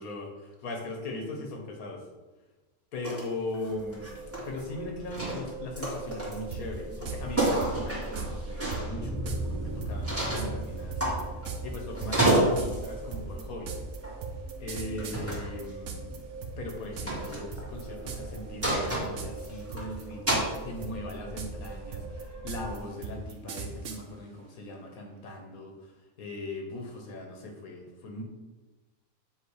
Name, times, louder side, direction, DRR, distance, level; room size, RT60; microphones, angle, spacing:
voice 1, 0.0-2.0 2.9-11.2 11.6-13.7 14.6-16.2 16.6-25.9 26.2-28.2, left 2 dB, 80° left, 2 dB, 1.5 m, -39 dB
sound 1, 3.0-3.2 3.5-4.7 5.1-6.5 6.9-7.0 7.4-8.9 10.0-10.5 11.0-11.7 11.9-12.9 14.0-14.2 15.0-15.5 17.1-17.4 18.6-19.8 20.3-20.5, right 1 dB, 10° right, 1.8 m, -29 dB
sound 2, 3.7-22.8, right 2 dB, 30° right, 0.3 m, -41 dB
sound 3, 6.5-6.6 7.1-7.2 7.6-8.3 8.7-8.8 9.3-9.4 9.8-16.2 16.4-17.3 17.5-17.8 18.1-18.4 18.6-19.5 19.7-20.6 20.8-24.0, right 6 dB, 65° right, 1.0 m, -38 dB
7.9 x 3.0 x 4.8 m, 1.2 s
omnidirectional pair, 1.5 m